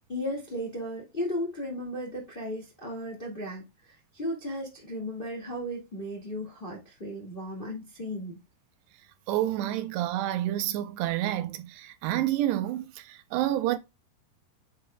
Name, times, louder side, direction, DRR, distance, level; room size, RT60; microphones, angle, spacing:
voice 1, 0.1-8.4, equal, 20° left, 1.3 m, -35 dB
voice 2, 9.3-13.8, right 13 dB, 85° right, 3.0 m, -29 dB
8.6 x 6.8 x 2.3 m
omnidirectional pair, 4.7 m